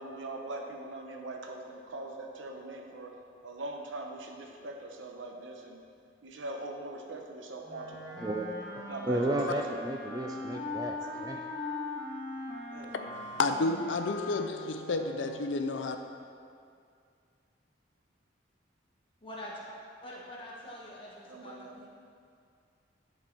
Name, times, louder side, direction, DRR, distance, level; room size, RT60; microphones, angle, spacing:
voice 1, 0.0-3.1 3.4-5.8 6.2-8.0 8.9-9.8 12.7-12.9 21.3-21.9, right 2 dB, 85° right, 3 dB, 0.8 m, -41 dB
Wind instrument woodwind instrument, 7.6-15.5, left 2 dB, 15° left, 2.0 m, -40 dB
voice 2, 8.1-8.5 9.1-11.0 11.2-11.4, right 1 dB, 20° right, 2 dB, 0.3 m, -32 dB
voice 3, 13.4-16.0, left 3 dB, 75° left, 6 dB, 0.5 m, -30 dB
voice 4, 19.2-19.6 20.0-21.9, left 1 dB, 30° left, -4 dB, 1.3 m, -45 dB
11.0 x 4.2 x 4.5 m, 2.3 s
head